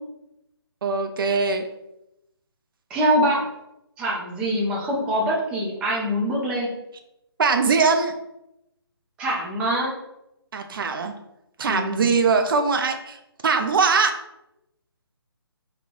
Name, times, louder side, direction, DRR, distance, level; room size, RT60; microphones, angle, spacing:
voice 1, 0.8-1.6 7.4-8.1 10.5-11.1 11.6-13.2 13.4-14.1, right 4 dB, 55° right, 6 dB, 0.5 m, -21 dB
voice 2, 2.9-3.4 4.0-6.7 9.2-9.9 11.7-12.1, equal, 10° right, -4 dB, 0.5 m, -24 dB
3.2 x 2.3 x 3.8 m, 0.86 s
figure-of-eight pair, 150°, 14 cm